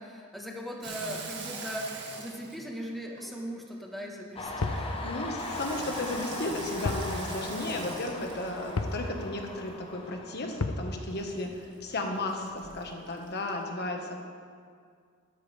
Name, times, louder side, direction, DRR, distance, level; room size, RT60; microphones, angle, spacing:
voice 1, 0.0-4.9, equal, ahead, -1 dB, 1.3 m, -39 dB
Water tap faucet / Sink (filling or washing), 0.8-3.8 5.4-9.1 11.1-13.6, right 3 dB, 55° right, 1.8 m, -44 dB
Train, 4.3-11.8 12.1-13.0, left 2 dB, 25° left, 1.1 m, -40 dB
sound 1, 4.6-4.9 6.8-7.1 7.4-7.5 8.8-9.0 10.6-10.9, left 3 dB, 75° left, 0.7 m, -30 dB
voice 2, 5.0-14.2, left 2 dB, 50° left, 2 dB, 1.4 m, -34 dB
13.0 x 13.0 x 3.4 m, 2.1 s
head